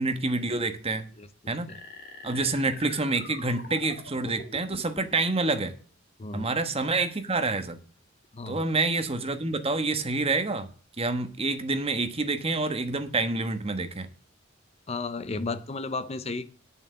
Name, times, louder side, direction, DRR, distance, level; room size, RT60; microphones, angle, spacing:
voice 1, 0.0-1.1 1.5-1.7 2.2-5.7 6.3-7.8 8.5-10.7 11.0-14.1, right 3 dB, 30° right, 1.2 m, -27 dB
sound 1, 1.7-5.2, left 3 dB, 50° left, 2.2 m, -44 dB
voice 2, 14.9-16.5, left 3 dB, 30° left, 0.6 m, -33 dB
9.0 x 7.1 x 7.0 m
head